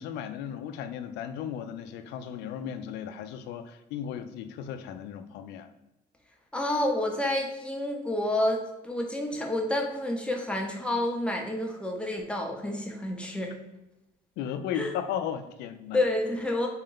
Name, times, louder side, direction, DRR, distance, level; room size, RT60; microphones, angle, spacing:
voice 1, 0.0-5.7 14.4-16.0, left 9 dB, 85° left, 9 dB, 0.4 m, -35 dB
voice 2, 6.5-13.6 14.7-14.9 15.9-16.7, left 1 dB, 5° left, 1 dB, 0.7 m, -29 dB
3.8 x 2.1 x 3.8 m, 0.95 s
cardioid pair, 110°, 17 cm